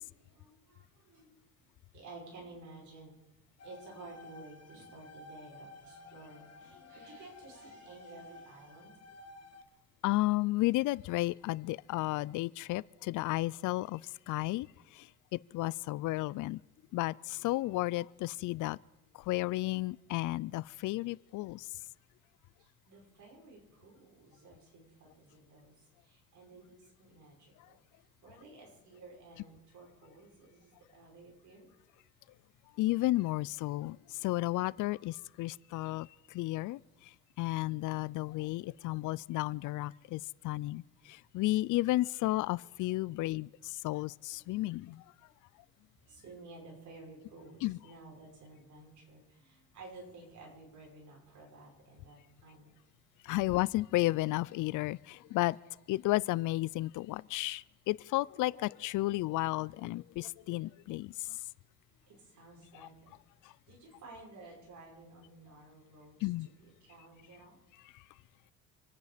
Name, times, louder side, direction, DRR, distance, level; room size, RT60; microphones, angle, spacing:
voice 1, 0.0-1.7 1.9-3.2 3.6-9.0 22.6-31.7 46.1-52.8 61.9-63.2 63.7-67.6, right 2 dB, 70° right, 5.8 m, -53 dB
sound 1, 3.6-9.6, left 2 dB, 55° left, 1.5 m, -53 dB
voice 2, 10.0-14.0 14.3-14.7 15.0-15.1 15.3-16.6 16.9-18.8 19.3-21.7 32.8-34.0 34.2-36.1 36.3-36.8 37.4-40.8 41.1-45.0 47.6-47.8 53.2-55.6 55.9-61.1 66.2-66.5, left 18 dB, 80° left, 0.5 m, -32 dB
26.5 x 9.6 x 5.0 m
cardioid pair, 90°, 30 cm